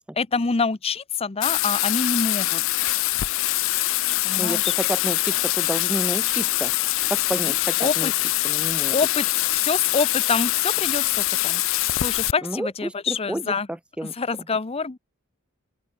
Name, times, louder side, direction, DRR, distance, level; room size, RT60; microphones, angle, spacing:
voice 1, 0.2-2.6 4.2-4.7 7.4-7.5 7.8-8.1 8.9-13.7 14.0-15.0, left 4 dB, 30° left, 0.7 m, -26 dB
Bathtub (filling or washing), 1.4-12.3, left 18 dB, 65° left, 0.4 m, -23 dB
voice 2, 4.4-6.7 7.1-8.1 8.4-9.0 12.4-14.1, right 1 dB, 5° right, 0.4 m, -30 dB
open air
head